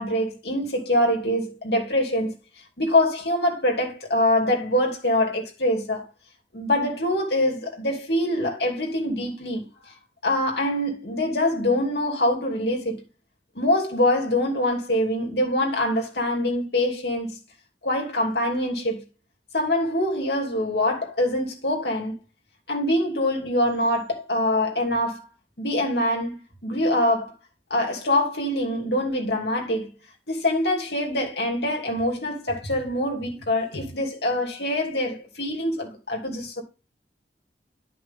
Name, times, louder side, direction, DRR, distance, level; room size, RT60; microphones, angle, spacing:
voice 1, 0.0-2.3 2.8-6.1 6.5-9.7 10.2-13.0 13.5-17.3 17.8-19.0 19.5-22.1 22.7-25.3 25.6-27.3 27.7-29.9 30.3-36.6, left 1 dB, 65° left, 2.8 m, -24 dB
11.0 x 5.8 x 3.7 m
head